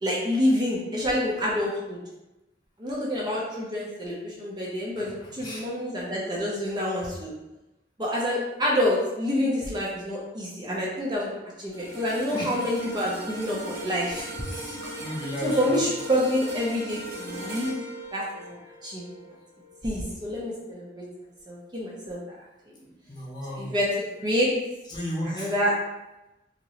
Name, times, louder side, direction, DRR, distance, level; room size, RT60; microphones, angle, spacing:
voice 1, 0.0-2.0 2.8-7.3 8.0-14.3 14.8-14.9 15.4-17.7 18.1-19.2 19.8-21.0 21.5-22.2 23.5-23.9 24.2-24.5 25.2-25.7, equal, 25° right, -4 dB, 0.5 m, -27 dB
voice 2, 5.0-5.7 12.3-12.7 14.4-15.8 22.8-23.7 24.9-25.5, left 1 dB, 25° left, -5 dB, 0.8 m, -34 dB
sound 1, 11.7-20.1 20.5-20.7, right 1 dB, 55° right, 1.0 m, -39 dB
2.9 x 2.7 x 2.9 m, 0.99 s
head